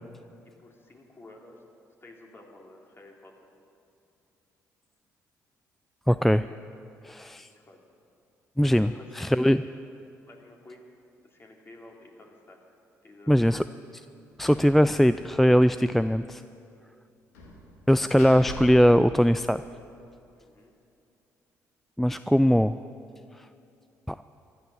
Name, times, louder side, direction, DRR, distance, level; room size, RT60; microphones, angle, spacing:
voice 1, 0.6-1.6 2.0-3.3 7.3-7.8 8.9-9.6 10.3-10.9 11.2-12.6 13.0-13.6 17.3-17.5 20.3-20.7, left 2 dB, 30° left, 0 dB, 2.9 m, -51 dB
voice 2, 6.1-6.5 7.0-7.5 8.6-9.6 13.3-13.6 14.4-16.4 17.9-19.6 22.0-22.8 24.1-24.2, equal, 5° left, 12 dB, 0.3 m, -21 dB
Slam, 14.4-14.7 15.0-15.1 15.4-15.6 17.3-19.9, right 1 dB, 90° left, 2.0 m, -43 dB
15.0 x 12.0 x 7.1 m, 2.6 s
hypercardioid pair, 50°, 8 cm